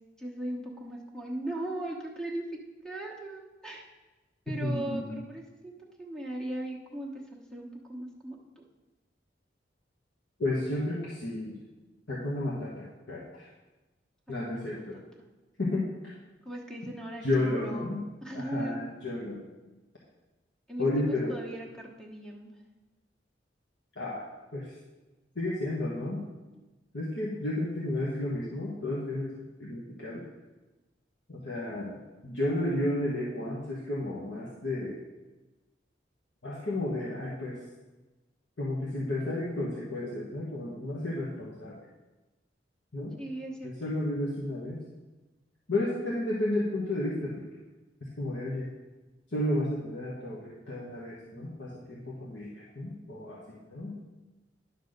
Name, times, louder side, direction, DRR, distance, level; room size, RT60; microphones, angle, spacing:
voice 1, 0.2-3.8 4.5-8.6 14.4-14.8 16.4-17.9 18.2-18.8 20.7-22.6 43.2-43.7, right 1 dB, 5° left, -2 dB, 1.1 m, -38 dB
voice 2, 4.6-5.1 10.4-11.6 12.1-13.5 14.3-15.0 15.6-16.1 17.2-18.0 18.3-19.4 20.8-21.4 24.0-24.7 25.3-26.2 26.9-29.3 29.6-30.2 31.3-35.0 36.4-37.6 38.6-41.8 42.9-43.1 43.6-44.8 45.7-47.4 48.2-48.7 49.3-54.0, left 1 dB, 90° left, -5 dB, 1.4 m, -32 dB
10.0 x 4.1 x 6.5 m, 1.1 s
head